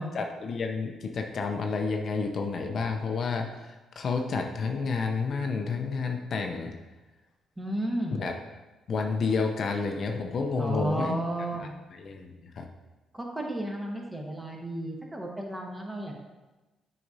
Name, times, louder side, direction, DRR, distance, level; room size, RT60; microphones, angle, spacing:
voice 1, 0.1-6.7 8.2-8.3 8.9-11.2 11.9-12.7, left 4 dB, 55° left, 3 dB, 0.6 m, -30 dB
voice 2, 7.6-8.2 10.6-11.7 13.1-16.2, right 1 dB, 15° right, 0 dB, 1.1 m, -32 dB
7.8 x 4.9 x 2.7 m, 1.1 s
cardioid pair, 90°, 0 cm